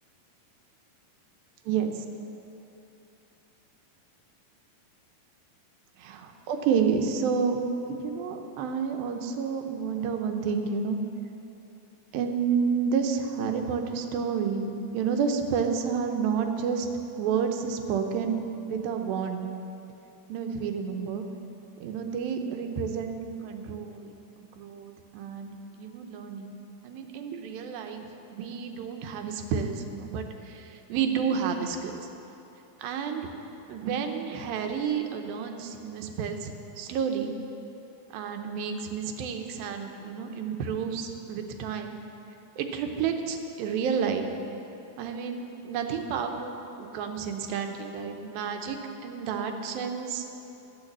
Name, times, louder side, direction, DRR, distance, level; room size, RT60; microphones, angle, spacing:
voice 1, 1.7-2.0 6.0-7.6 7.9-11.0 12.1-16.9 17.2-18.4 18.7-19.4 20.3-21.2 21.8-26.6 26.8-32.0 32.8-33.3 33.7-37.3 38.1-42.0 42.6-44.3 45.0-48.8 49.0-50.3, right 6 dB, 80° right, 5 dB, 2.6 m, -30 dB
10.5 x 8.5 x 7.3 m, 2.9 s
omnidirectional pair, 4.2 m